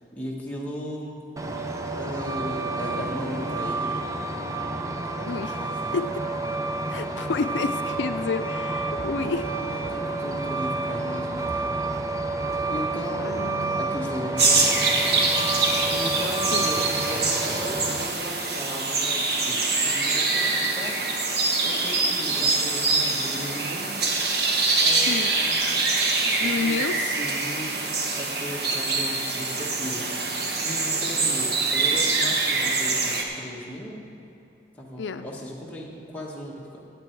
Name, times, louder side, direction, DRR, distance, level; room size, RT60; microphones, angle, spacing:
voice 1, 0.1-1.2 1.9-3.9 5.3-6.0 7.3-7.5 9.2-11.6 12.7-13.3 13.8-15.2 15.9-21.0 21.6-23.9 24.8-25.6 26.4-27.9 28.2-34.0 34.7-36.9, equal, 10° left, -4 dB, 1.5 m, -37 dB
Truck, 1.4-18.1, right 3 dB, 20° right, 0.5 m, -29 dB
voice 2, 5.3-6.1 6.9-9.5 13.2-13.8 16.5-16.7 25.1-25.3 26.2-27.2 35.0-35.3, left 4 dB, 85° left, 9 dB, 0.4 m, -30 dB
sound 1, 14.4-33.2, right 3 dB, 65° right, 1.2 m, -24 dB
15.5 x 8.3 x 4.6 m, 2.6 s
head